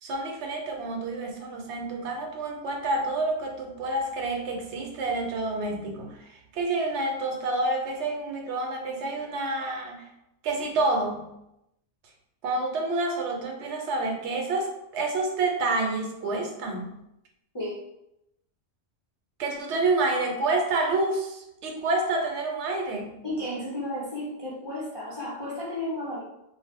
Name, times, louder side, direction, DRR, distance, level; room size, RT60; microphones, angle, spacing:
voice 1, 0.0-10.1 10.4-11.3 12.4-16.9 19.4-23.2, right 2 dB, 70° right, 2 dB, 0.8 m, -28 dB
voice 2, 23.2-26.2, left 1 dB, 40° left, -7 dB, 0.3 m, -33 dB
2.3 x 2.0 x 3.4 m, 0.86 s
omnidirectional pair, 1.3 m